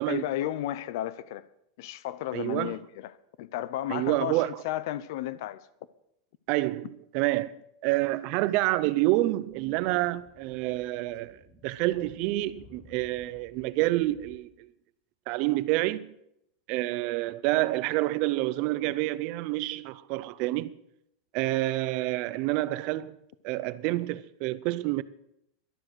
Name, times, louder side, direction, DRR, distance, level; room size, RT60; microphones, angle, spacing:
voice 1, 0.1-1.5 1.8-5.6, left 13 dB, 55° left, 0.7 m, -33 dB
voice 2, 2.3-2.8 3.9-4.6 6.5-6.9 7.1-14.7 15.3-16.1 16.7-20.7 21.3-23.2 23.4-25.0, right 18 dB, 40° right, 0.5 m, -28 dB
Speech / Wind, 9.4-14.4, left 4 dB, 20° left, 1.5 m, -57 dB
12.5 x 12.0 x 6.2 m
supercardioid pair, 165°, 2 cm